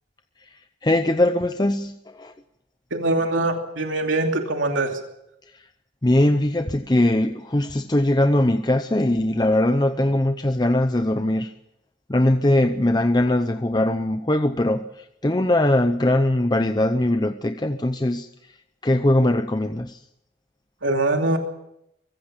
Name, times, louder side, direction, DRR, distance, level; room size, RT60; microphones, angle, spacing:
voice 1, 0.8-2.3 5.5-5.6 6.0-11.5 12.1-18.3 18.8-20.0, left 1 dB, 20° left, 8 dB, 0.7 m, -21 dB
voice 2, 2.9-5.0 20.8-21.4, right 2 dB, 80° right, 3 dB, 2.8 m, -23 dB
23.5 x 15.5 x 7.2 m, 0.81 s
head